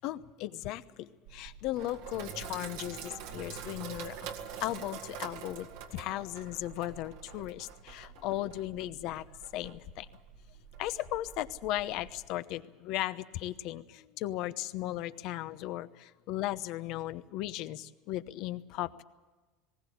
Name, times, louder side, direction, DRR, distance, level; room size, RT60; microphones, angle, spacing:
voice 1, 0.0-4.3 4.6-9.2 9.5-10.1 10.8-19.0, left 15 dB, 60° left, 13 dB, 0.9 m, -36 dB
Sink (filling or washing), 1.3-12.3, right 7 dB, 80° right, 1.9 m, -46 dB
19.5 x 17.0 x 8.5 m, 1.2 s
supercardioid pair, 105°, 0 cm